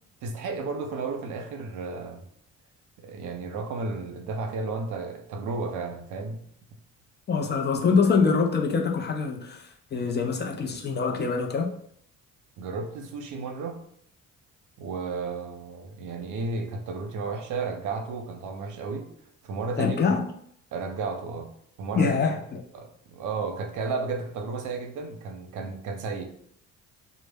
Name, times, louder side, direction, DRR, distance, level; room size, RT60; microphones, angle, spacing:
voice 1, 0.2-2.2 3.0-6.4 12.6-13.8 14.8-19.1 19.4-20.0 20.7-21.5 21.8-22.1 22.7-26.2, right 4 dB, 80° right, 4 dB, 0.6 m, -33 dB
voice 2, 7.3-11.7 19.8-20.3 21.9-22.6, left 5 dB, 35° left, 2 dB, 0.4 m, -24 dB
2.0 x 2.0 x 3.3 m, 0.66 s
cardioid pair, 90°, 30 cm